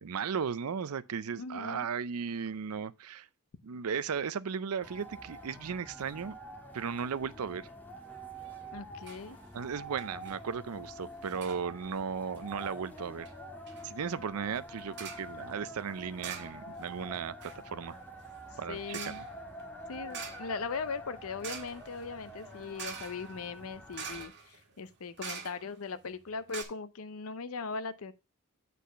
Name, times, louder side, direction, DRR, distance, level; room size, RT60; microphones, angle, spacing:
voice 1, 0.0-3.3 3.6-6.4 6.7-7.7 9.5-13.3 13.8-18.0 18.6-19.1, right 6 dB, 90° right, 0.5 m, -36 dB
voice 2, 1.3-1.9 8.7-9.4 18.7-19.2 19.9-28.1, left 4 dB, 70° left, 0.6 m, -39 dB
sound 1, 4.8-24.2, right 1 dB, 10° left, 1.5 m, -47 dB
sound 2, 8.4-8.7 9.0-9.2 9.5-9.6 10.0-10.4 11.2-11.6 12.4-12.7 13.2-13.3 13.7-13.9 14.9-15.3 16.2-16.9 17.1-25.9 26.2-26.3 26.5-26.6, right 6 dB, 55° right, 1.6 m, -46 dB
8.3 x 4.2 x 5.6 m
head